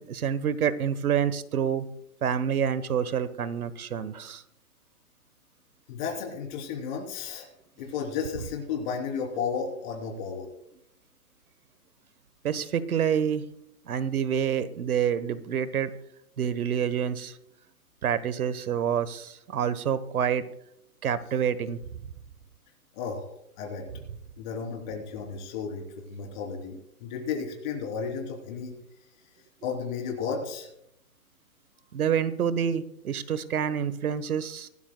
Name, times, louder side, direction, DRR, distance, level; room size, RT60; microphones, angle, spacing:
voice 1, 0.1-1.9 2.2-4.4 12.4-13.4 13.9-15.9 16.4-17.3 18.0-20.4 21.0-21.8 31.9-34.7, right 8 dB, 80° right, 15 dB, 1.2 m, -27 dB
voice 2, 5.9-7.5 7.8-10.5 22.9-23.3 23.6-23.9 24.4-28.8 29.6-30.7, left 6 dB, 30° left, 1 dB, 3.3 m, -33 dB
24.5 x 12.5 x 2.2 m, 0.79 s
hypercardioid pair, 160°, 43 cm